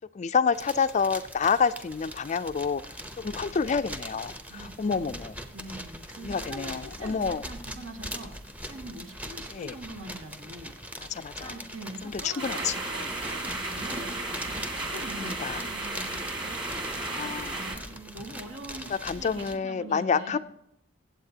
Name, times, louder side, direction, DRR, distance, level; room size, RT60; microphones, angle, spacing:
voice 1, 0.1-2.8 3.2-5.3 6.2-7.4 9.5-9.7 11.1-11.5 12.0-12.7 15.2-15.6 17.2-17.5 19.0-20.4, left 6 dB, 35° left, 13 dB, 0.3 m, -28 dB
sound 1, 0.5-19.6, equal, 5° right, 0.7 m, -42 dB
voice 2, 4.5-8.4 8.7-10.8 11.4-14.1 14.4-20.4, right 2 dB, 75° right, 3 dB, 1.9 m, -43 dB
sound 2, 12.4-17.8, right 2 dB, 25° right, 1.9 m, -34 dB
23.5 x 8.0 x 2.8 m, 0.81 s
head